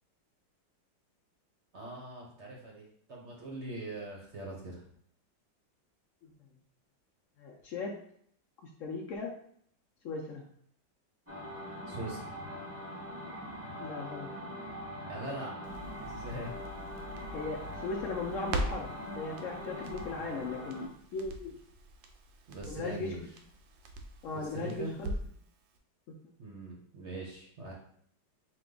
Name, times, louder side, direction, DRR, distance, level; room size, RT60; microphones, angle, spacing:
voice 1, 1.7-4.9 11.9-12.3 15.0-15.6 16.0-16.5 22.5-23.2 24.3-25.0 26.4-27.7, right 2 dB, 50° right, -2 dB, 0.9 m, -42 dB
voice 2, 7.4-7.9 8.6-9.3 10.0-10.4 13.8-14.3 17.3-21.5 22.6-23.1 24.2-25.1 26.1-26.2, left 3 dB, 80° left, -1 dB, 0.7 m, -38 dB
sound 1, 11.3-20.9, equal, 15° right, 0.5 m, -42 dB
Crackle, 15.6-25.4 25.7-25.8, right 1 dB, 80° right, 1.3 m, -42 dB
5.0 x 2.2 x 3.8 m, 0.64 s
omnidirectional pair, 2.0 m